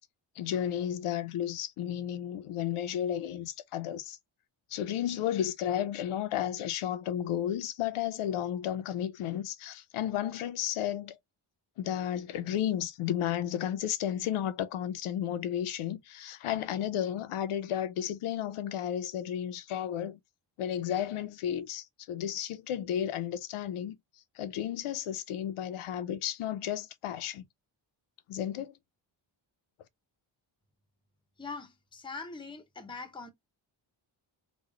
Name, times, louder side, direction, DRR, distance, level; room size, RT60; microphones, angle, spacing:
voice 1, 0.4-4.2 4.7-11.2 11.8-20.2 20.6-24.0 24.4-27.4 28.3-28.7, left 10 dB, 85° left, 0.6 m, -33 dB
voice 2, 31.4-33.3, left 4 dB, 10° left, 0.5 m, -42 dB
3.0 x 2.1 x 3.6 m
wide cardioid pair, 145°, 49 cm